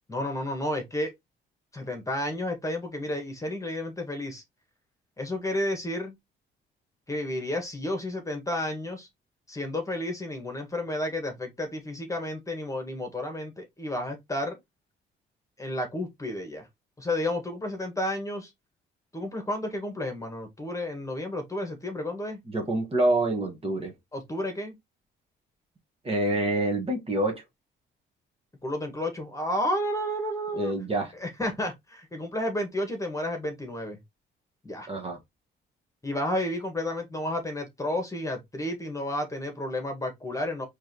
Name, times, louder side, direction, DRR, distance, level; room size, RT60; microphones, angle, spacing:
voice 1, 0.1-1.1 1.7-4.4 5.2-6.1 7.1-9.1 9.5-14.6 15.6-16.7 17.0-18.5 19.1-22.4 24.1-24.7 28.6-30.7 31.2-34.0 34.6-34.9 36.0-40.6, left 1 dB, 15° left, 1.6 m, -31 dB
voice 2, 22.5-23.9 26.0-27.4 30.5-31.1 34.9-35.2, right 1 dB, 30° right, 1.4 m, -26 dB
4.6 x 3.2 x 2.9 m
cardioid pair, 90°, 20 cm